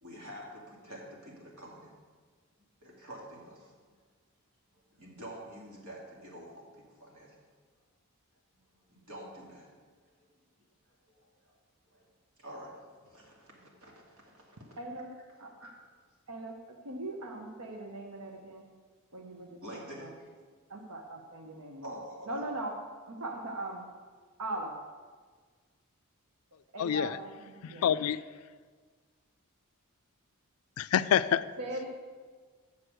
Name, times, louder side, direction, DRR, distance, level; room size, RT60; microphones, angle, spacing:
voice 1, 0.0-1.9 2.8-4.0 4.7-7.4 8.9-9.7 10.1-10.4 11.1-11.6 11.9-12.1 12.4-14.8 15.4-15.7 19.6-20.3 21.8-22.3, equal, 70° right, -3 dB, 2.6 m, -48 dB
voice 2, 14.8-15.1 15.4-15.5 16.3-18.6 19.1-20.1 20.7-22.8 23.0-23.9 24.4-24.8 26.7-27.8 31.2-31.3 31.6-31.8, right 2 dB, 90° right, 3 dB, 0.9 m, -40 dB
voice 3, 26.8-27.2 27.6-28.2 30.8-31.5, left 9 dB, 70° left, 15 dB, 0.3 m, -27 dB
7.3 x 6.2 x 7.8 m, 1.5 s
head